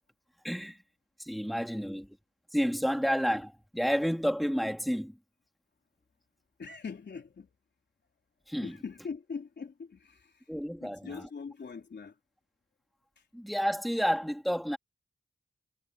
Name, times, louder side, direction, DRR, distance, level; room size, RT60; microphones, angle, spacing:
voice 1, 0.4-0.8 1.2-2.1 2.5-5.2 8.5-8.8 10.5-11.3 13.3-14.8, equal, ahead, 2.6 m, -30 dB
voice 2, 6.6-7.5 8.6-10.3 10.8-12.1, left 5 dB, 75° left, 3.6 m, -42 dB
cardioid pair, 50°, 18 cm